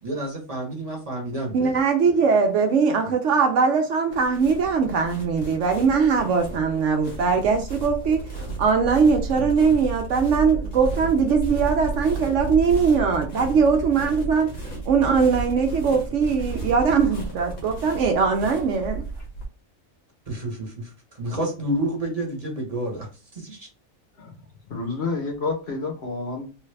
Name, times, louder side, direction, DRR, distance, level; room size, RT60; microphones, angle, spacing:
voice 1, 0.0-1.7 9.3-9.5 20.3-23.1 23.3-23.7, right 1 dB, 30° right, 0.9 m, -29 dB
voice 2, 1.5-19.0, right 5 dB, 70° right, 0.8 m, -21 dB
sound 1, 4.1-19.5, right 3 dB, 80° left, 1.4 m, -33 dB
voice 3, 24.6-26.5, left 3 dB, 55° left, 0.9 m, -29 dB
3.3 x 2.4 x 3.2 m
omnidirectional pair, 1.5 m